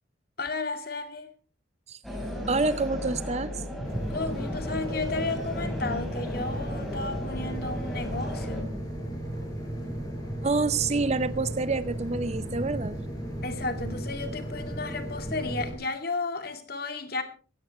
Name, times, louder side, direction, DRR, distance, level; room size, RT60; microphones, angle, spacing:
voice 1, 0.4-1.3 4.1-8.7 13.4-17.2, left 3 dB, 50° left, 2.3 m, -33 dB
sound 1, 2.0-8.6, left 1 dB, ahead, 4.6 m, -36 dB
voice 2, 2.5-3.6 10.4-13.0, right 3 dB, 35° right, 0.6 m, -27 dB
sound 2, 3.8-15.7, right 1 dB, 20° left, 6.1 m, -35 dB
17.0 x 16.0 x 3.1 m
head